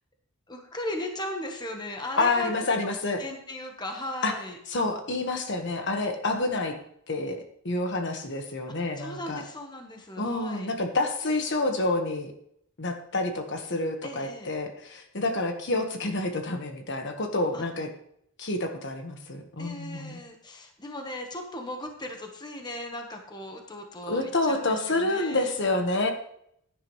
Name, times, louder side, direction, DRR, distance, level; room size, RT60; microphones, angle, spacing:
voice 1, 0.5-2.6 3.2-4.6 8.8-10.7 14.0-14.5 17.5-17.7 19.6-25.5, left 1 dB, 20° left, 3 dB, 1.3 m, -37 dB
voice 2, 2.2-3.2 4.2-4.3 4.7-6.7 7.1-9.4 10.2-12.3 12.8-17.9 18.4-20.2 24.1-26.1, left 2 dB, 55° left, 5 dB, 1.5 m, -28 dB
15.5 x 10.0 x 3.2 m, 0.70 s
head